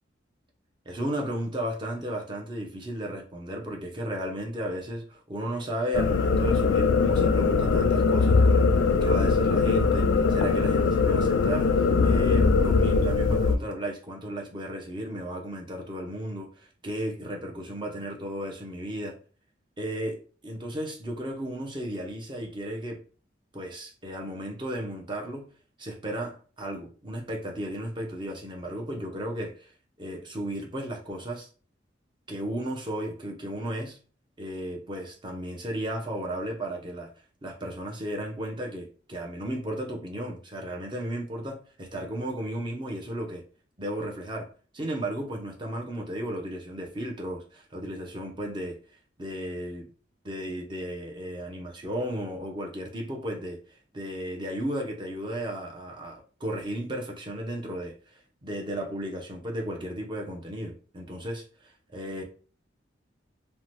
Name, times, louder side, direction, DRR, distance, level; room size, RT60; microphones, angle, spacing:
voice 1, 0.9-8.7 9.0-19.2 19.8-23.0 23.5-25.5 25.8-29.7 30.0-31.5 32.3-34.0 34.4-37.1 37.4-43.4 43.8-44.5 44.7-48.8 49.2-49.8 50.2-53.6 53.9-57.9 58.4-62.2, right 1 dB, 25° right, 0.5 m, -34 dB
sound 1, 5.9-13.6, left 4 dB, 85° left, 0.3 m, -21 dB
2.7 x 2.1 x 3.1 m
head